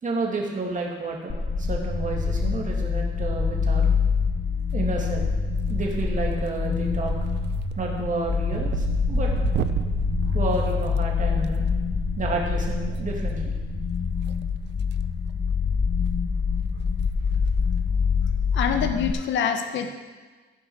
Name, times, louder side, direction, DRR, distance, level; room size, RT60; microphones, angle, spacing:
voice 1, 0.0-3.9 4.7-5.3 5.7-7.1 7.8-9.3 10.3-11.6 12.2-13.5, right 3 dB, 40° right, -1 dB, 2.3 m, -30 dB
sound 1, 1.3-19.1, left 5 dB, 35° left, 0.8 m, -25 dB
sound 2, 1.9-13.9, right 12 dB, 85° right, 1.2 m, -38 dB
sound 3, 4.7-5.3 5.6-6.1 6.5-6.7 7.1-11.5 12.8-13.0 14.2-15.0 15.3-15.5 16.1-16.2 16.4-16.5 16.9-17.1 17.3-17.4 19.0-19.3, right 10 dB, 60° right, 0.5 m, -33 dB
voice 2, 18.5-19.9, left 7 dB, 70° left, 6 dB, 0.9 m, -25 dB
15.0 x 5.5 x 4.8 m, 1.4 s
cardioid pair, 90°, 20 cm